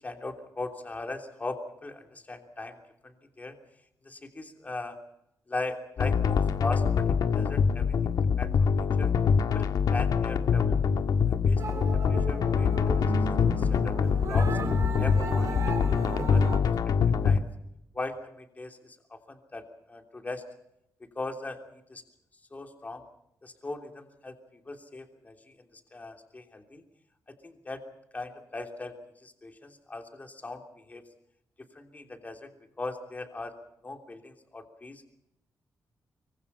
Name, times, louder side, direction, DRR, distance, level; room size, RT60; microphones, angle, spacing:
voice 1, 0.0-3.6 4.0-5.0 5.5-9.1 9.5-10.7 11.3-12.7 13.2-13.9 14.3-14.6 15.0-16.9 17.2-17.4 17.9-20.4 21.0-21.6 21.9-22.0 22.5-23.0 23.4-24.3 24.6-26.8 27.3-27.8 28.1-30.6 30.9-31.0 31.7-32.5 32.8-33.5 33.8-35.0, left 2 dB, 25° left, 5 dB, 3.2 m, -39 dB
sound 1, 6.0-17.4, left 6 dB, 75° left, 1.6 m, -24 dB
sound 2, 11.6-16.6, right 3 dB, 50° right, 5.3 m, -35 dB
24.5 x 24.0 x 5.6 m, 0.81 s
wide cardioid pair, 130°, 7 cm